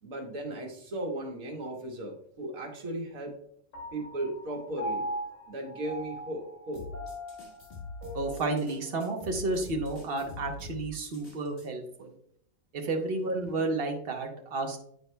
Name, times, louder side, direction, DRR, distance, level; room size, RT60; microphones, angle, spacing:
voice 1, 0.0-3.3 3.9-5.0 5.5-6.8, right 1 dB, 85° right, 2 dB, 1.6 m, -36 dB
Piano, 3.7-10.4, equal, 65° left, 2.6 m, -41 dB
sound 1, 6.7-11.7, left 3 dB, 45° left, 1.8 m, -43 dB
voice 2, 8.1-12.1 12.7-14.8, right 2 dB, 45° right, 3 dB, 1.1 m, -31 dB
9.2 x 4.7 x 2.2 m, 0.68 s
omnidirectional pair, 1.4 m